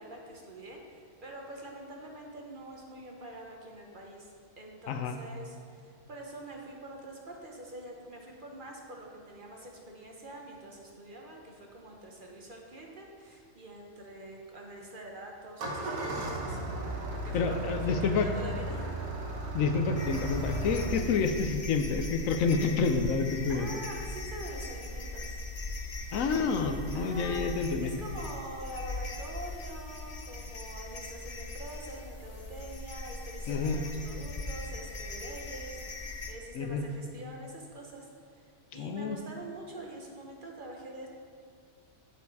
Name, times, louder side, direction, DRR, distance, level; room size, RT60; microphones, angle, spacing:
voice 1, 0.0-16.9 17.2-19.0 20.8-21.1 23.5-25.4 26.9-27.5 27.8-41.1, right 1 dB, 40° right, 0 dB, 1.0 m, -45 dB
voice 2, 4.9-5.2 17.3-18.3 19.5-23.7 26.1-27.9 33.5-33.8 36.5-36.8 38.7-39.2, left 4 dB, 75° left, 7 dB, 1.0 m, -29 dB
Engine starting, 15.4-20.9, right 1 dB, 85° right, 1.6 m, -35 dB
sound 1, 20.0-36.3, left 2 dB, 40° left, 0.6 m, -40 dB
8.0 x 7.0 x 4.6 m, 2.1 s
omnidirectional pair, 1.4 m